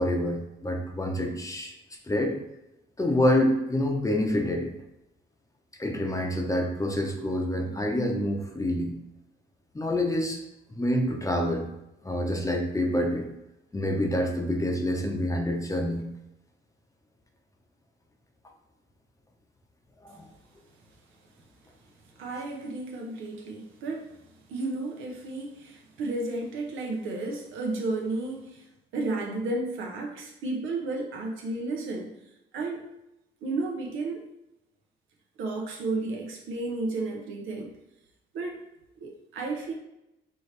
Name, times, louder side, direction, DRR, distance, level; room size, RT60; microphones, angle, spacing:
voice 1, 0.0-1.7 2.1-2.4 3.0-4.7 5.8-9.0 9.7-10.4 10.8-11.7 12.0-13.3 13.7-16.0 20.0-20.2, left 1 dB, 15° left, 2 dB, 0.7 m, -27 dB
voice 2, 22.2-24.1 24.5-28.6 28.9-32.1 32.5-32.9 33.4-34.2 35.4-37.7 38.3-38.6 39.0-39.7, right 2 dB, 90° right, 0 dB, 0.9 m, -32 dB
4.5 x 3.0 x 3.2 m, 0.89 s
cardioid pair, 90°, 20 cm